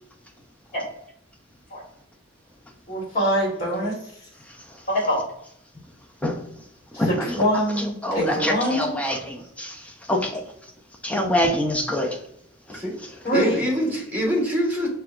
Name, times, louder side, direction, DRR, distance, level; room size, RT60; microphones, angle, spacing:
voice 1, 2.9-4.3 4.9-5.2 6.9-9.0 13.2-13.6, equal, 40° left, -4 dB, 1.4 m, -24 dB
voice 2, 6.9-9.8 10.1-10.4 11.0-12.2 12.7-12.8, left 1 dB, 5° left, 2 dB, 0.5 m, -25 dB
voice 3, 13.3-14.9, equal, 10° right, -1 dB, 1.1 m, -24 dB
6.1 x 2.2 x 2.4 m, 0.72 s
head